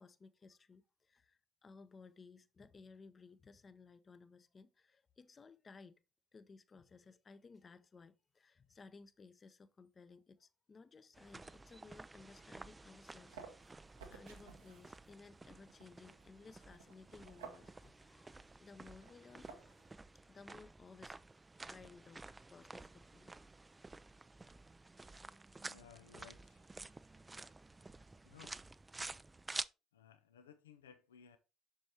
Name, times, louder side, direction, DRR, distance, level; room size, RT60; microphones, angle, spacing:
voice 1, 0.0-6.0 6.3-13.8 14.1-20.0 20.2-21.2 21.7-22.2 22.5-23.3, left 4 dB, 35° left, 0.7 m, -59 dB
sound 1, 11.1-29.7, right 3 dB, 20° right, 0.3 m, -51 dB
sound 2, 12.9-20.0, right 6 dB, 75° right, 1.1 m, -57 dB
voice 2, 25.0-25.3 25.6-26.7 28.2-28.6 29.9-31.4, left 8 dB, 80° left, 0.4 m, -60 dB
7.4 x 6.4 x 2.8 m
figure-of-eight pair, 50°, 0 cm